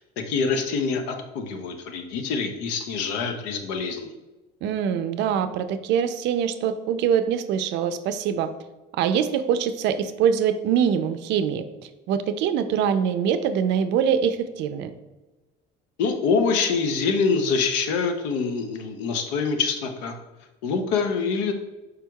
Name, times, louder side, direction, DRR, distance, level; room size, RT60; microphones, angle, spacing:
voice 1, 0.2-4.2 16.0-20.1 20.6-21.5, left 5 dB, 90° left, 6 dB, 0.7 m, -25 dB
voice 2, 4.6-8.5 8.9-11.6 12.1-14.9, right 8 dB, 65° right, 10 dB, 0.4 m, -23 dB
4.9 x 4.5 x 2.3 m, 1.1 s
cardioid pair, 120°, 20 cm